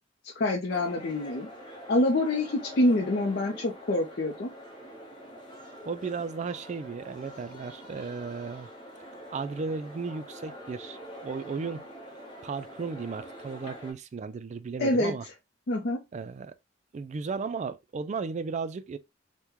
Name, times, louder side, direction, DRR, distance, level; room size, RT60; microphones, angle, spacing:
voice 1, 0.2-1.5 1.9-4.5 14.8-15.1 15.7-16.0, left 1 dB, 55° left, 0.5 m, -26 dB
sound 1, 0.7-13.9, equal, 25° left, 1.0 m, -45 dB
voice 2, 5.8-8.7 9.3-11.9 12.4-15.2 16.1-16.5 16.9-19.0, right 4 dB, 40° right, 0.3 m, -35 dB
3.5 x 2.1 x 2.9 m
head